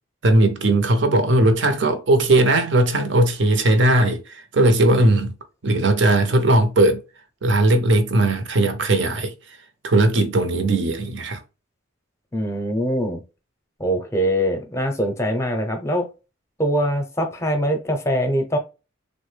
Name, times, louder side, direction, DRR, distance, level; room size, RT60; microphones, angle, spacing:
voice 1, 0.2-5.3 5.6-7.0 7.4-9.3 9.8-11.4, right 2 dB, 60° right, 0.7 m, -18 dB
voice 2, 12.3-13.2 13.8-16.1 16.6-18.6, equal, 15° left, 0.6 m, -23 dB
3.5 x 2.1 x 3.2 m
head